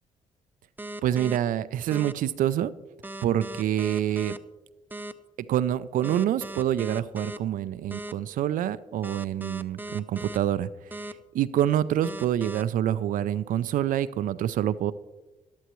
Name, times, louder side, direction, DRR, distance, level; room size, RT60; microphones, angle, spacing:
sound 1, 0.8-1.4 1.9-2.1 3.0-4.4 4.9-5.1 6.0-7.4 7.9-8.1 9.0-10.4 10.9-11.1 12.0-12.6, right 2 dB, 15° right, 0.6 m, -37 dB
voice 1, 1.0-2.7 3.2-4.3 5.5-14.9, right 11 dB, 75° right, 15 dB, 0.5 m, -26 dB
13.0 x 11.5 x 3.1 m, 1.1 s
cardioid pair, 70°, 14 cm